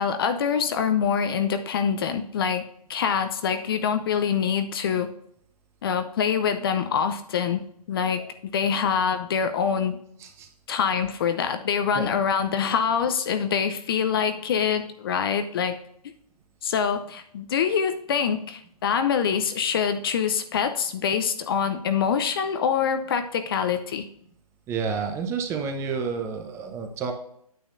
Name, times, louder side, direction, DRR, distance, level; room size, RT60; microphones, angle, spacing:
voice 1, 0.0-2.6 2.9-5.1 5.8-7.6 7.9-8.2 8.5-10.0 10.7-15.8 16.6-24.1, left 7 dB, 35° left, 8 dB, 0.6 m, -25 dB
voice 2, 24.7-27.1, right 5 dB, 15° right, 5 dB, 0.7 m, -30 dB
9.2 x 8.0 x 2.6 m, 0.68 s
figure-of-eight pair, 140°, 20 cm